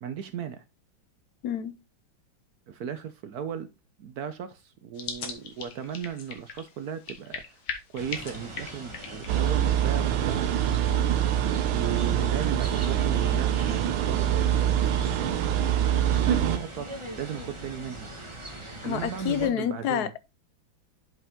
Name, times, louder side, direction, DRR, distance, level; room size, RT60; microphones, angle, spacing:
voice 1, 0.0-0.6 2.7-3.7 4.0-7.6 7.9-15.1 16.2-18.1 18.8-20.1, right 8 dB, 65° right, 1.0 m, -36 dB
voice 2, 1.4-1.8 18.8-20.2, left 10 dB, 70° left, 1.0 m, -28 dB
sound 1, 4.9-10.9, left 6 dB, 90° left, 2.2 m, -41 dB
sound 2, 8.0-19.5, right 1 dB, 15° right, 1.4 m, -41 dB
sound 3, 9.3-16.6, right 10 dB, 90° right, 1.6 m, -24 dB
7.7 x 5.4 x 3.6 m
omnidirectional pair, 2.1 m